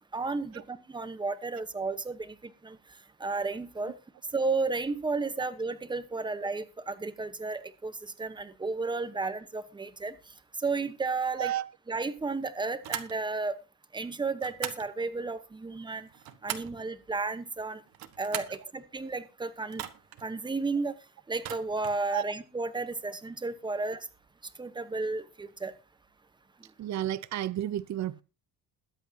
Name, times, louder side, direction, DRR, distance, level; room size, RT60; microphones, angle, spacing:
voice 1, 0.1-2.3 2.6-2.8 3.2-3.9 4.3-7.9 8.2-10.1 10.6-11.5 11.9-13.6 13.9-16.1 16.4-17.8 18.2-19.8 20.2-20.9 21.3-24.0 24.6-25.7, right 3 dB, 10° right, 1.0 m, -33 dB
sound 1, 12.8-13.2 14.4-14.9 15.9-16.8 17.9-18.6 19.7-20.2 21.3-22.0, right 11 dB, 70° right, 1.4 m, -39 dB
voice 2, 26.8-28.2, right 12 dB, 50° right, 0.6 m, -32 dB
21.5 x 8.1 x 2.8 m
cardioid pair, 160°, 37 cm